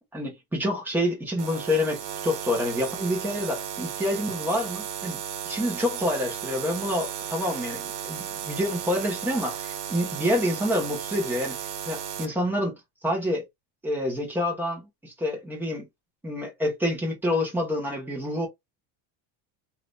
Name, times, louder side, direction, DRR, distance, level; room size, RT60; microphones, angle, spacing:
voice 1, 0.1-5.2 5.4-11.6 11.8-12.7 13.0-13.4 13.8-15.8 16.2-18.5, left 1 dB, 5° right, 1.1 m, -27 dB
sound 1, 1.4-12.3, right 9 dB, 65° right, 1.1 m, -35 dB
3.4 x 2.9 x 2.5 m
cardioid pair, 175°, 38 cm